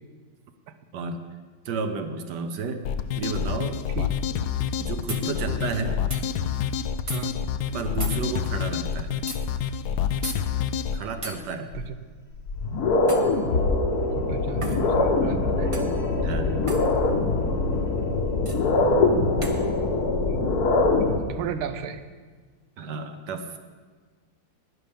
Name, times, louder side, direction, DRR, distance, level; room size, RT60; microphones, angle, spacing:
voice 1, 1.6-2.9 3.2-3.8 4.8-6.0 7.7-9.1 10.9-11.7 16.2-16.6 22.8-23.6, right 4 dB, 65° right, 7 dB, 1.3 m, -31 dB
sound 1, 2.8-11.0, left 8 dB, 80° left, 0.9 m, -28 dB
sound 2, 5.1-5.2 6.1-6.2 7.1-7.2 8.0-8.2 9.3-9.4 10.2-10.4 11.2-11.4 13.1-13.3 14.6-14.8 15.7-15.9 16.7-16.9 18.4-18.6 19.4-19.6, right 3 dB, 40° right, 0.4 m, -35 dB
sound 3, 11.7-11.8 12.4-21.2, left 3 dB, 55° left, 1.4 m, -23 dB
voice 2, 14.1-15.7 20.3-20.4 21.3-22.0, right 7 dB, 90° right, 10 dB, 1.6 m, -34 dB
11.5 x 10.0 x 5.2 m, 1.5 s
omnidirectional pair, 2.2 m